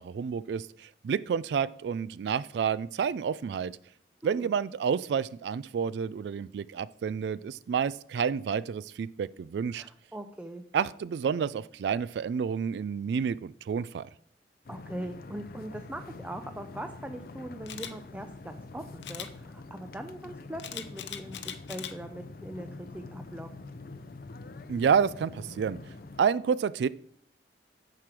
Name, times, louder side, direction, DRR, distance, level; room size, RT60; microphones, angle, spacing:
voice 1, 0.0-3.7 4.2-9.8 10.7-14.1 24.7-25.8 26.2-26.9, right 7 dB, 75° right, 18 dB, 0.3 m, -29 dB
voice 2, 4.2-4.5 9.7-10.7 14.7-23.5, right 1 dB, 10° right, 7 dB, 0.5 m, -41 dB
sound 1, 14.7-26.2, left 3 dB, 55° left, 0.5 m, -45 dB
Camera, 17.7-17.9 19.0-19.3 20.6-21.9 22.4-22.7, left 10 dB, 85° left, 0.8 m, -39 dB
9.3 x 4.9 x 6.1 m, 0.63 s
head